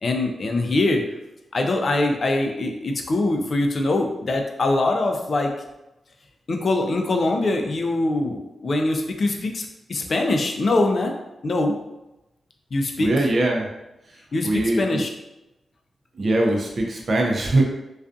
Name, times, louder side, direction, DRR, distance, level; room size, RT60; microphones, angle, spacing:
voice 1, 0.0-1.0 1.5-5.5 6.5-11.1 11.4-11.8 12.7-13.1 14.3-15.1, left 2 dB, 55° left, 3 dB, 0.4 m, -23 dB
voice 2, 13.0-13.7 14.4-15.0 16.2-17.6, right 2 dB, 60° right, 0 dB, 0.5 m, -21 dB
2.4 x 2.3 x 2.4 m, 0.95 s
cardioid pair, 60°, 0 cm